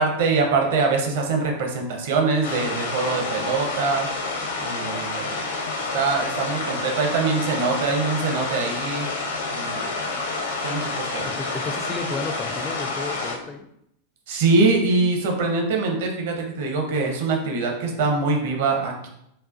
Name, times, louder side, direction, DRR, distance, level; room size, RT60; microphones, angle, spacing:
voice 1, 0.0-4.1 4.6-5.4 5.9-9.1 9.5-9.9 10.6-11.3 14.3-19.1, right 3 dB, 55° right, 2 dB, 0.8 m, -23 dB
sound 1, 2.4-13.4, left 3 dB, 65° left, 0.8 m, -29 dB
voice 2, 11.2-13.7, left 4 dB, 20° left, 6 dB, 0.4 m, -33 dB
5.4 x 2.3 x 2.6 m, 0.77 s
figure-of-eight pair, 90°, 0 cm